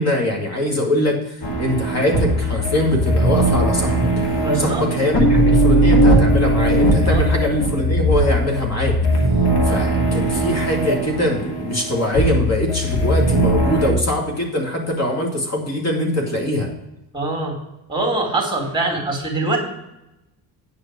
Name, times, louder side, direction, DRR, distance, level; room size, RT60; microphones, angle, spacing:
voice 1, 0.0-4.1 4.5-9.0 9.6-16.7, left 1 dB, 40° left, 0 dB, 2.3 m, -22 dB
sound 1, 1.4-13.9, right 1 dB, 80° left, 2.6 m, -19 dB
voice 2, 4.4-4.8 7.1-7.2 17.1-17.6 17.9-19.6, right 2 dB, 10° right, -1 dB, 2.5 m, -23 dB
9.6 x 4.9 x 7.5 m, 0.91 s
cardioid pair, 120°, 39 cm